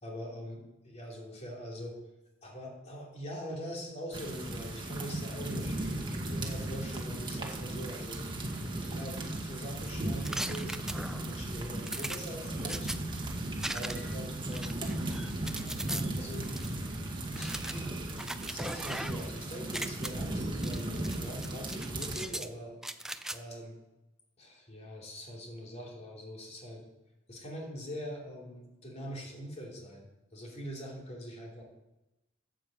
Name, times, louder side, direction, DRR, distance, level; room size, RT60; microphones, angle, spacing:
voice 1, 0.0-2.0 2.4-8.2 8.8-12.9 13.7-14.9 15.5-16.5 17.3-18.1 18.4-22.7 23.2-23.8 24.4-26.8 27.3-31.6, equal, 35° left, -2 dB, 3.0 m, -43 dB
sound 1, 4.1-22.3, right 1 dB, 25° right, 1.5 m, -36 dB
sound 2, 10.2-11.3 11.9-13.0 13.6-14.2 14.5-16.0 16.6-16.7 17.3-19.3 19.6-20.1 20.6-21.2 21.4-22.5 22.8-23.4, right 1 dB, 5° right, 0.5 m, -39 dB
9.1 x 7.6 x 7.5 m, 0.97 s
head